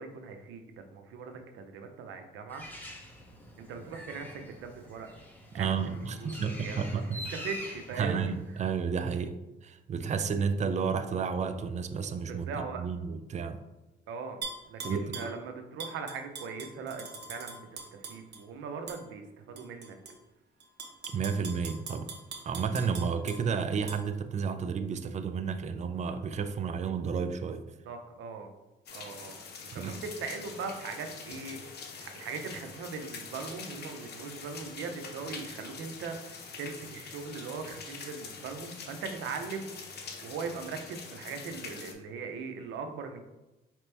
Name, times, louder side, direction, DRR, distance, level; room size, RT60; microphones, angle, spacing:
voice 1, 0.0-2.7 3.6-5.1 5.5-7.0 7.3-8.4 12.3-12.9 14.1-14.4 14.7-20.0 27.9-28.5 28.9-29.4 29.7-43.2, right 5 dB, 85° right, 6 dB, 0.6 m, -40 dB
Bird, 2.5-9.0, left 1 dB, 10° left, 1.0 m, -46 dB
voice 2, 5.5-7.3 8.0-8.3 8.6-12.5 12.8-13.6 14.8-15.1 21.1-22.1 22.4-27.6 29.7-29.9, right 6 dB, 35° right, 10 dB, 0.4 m, -31 dB
Tap / Glass, 14.4-15.3 15.8-18.4 18.9-19.0 19.6-20.1 20.6-23.4 23.9-24.0, right 4 dB, 60° right, 0.9 m, -41 dB
sound 1, 28.9-41.9, left 5 dB, 55° left, 0.8 m, -45 dB
5.0 x 3.0 x 3.3 m, 1.0 s
cardioid pair, 90°, 20 cm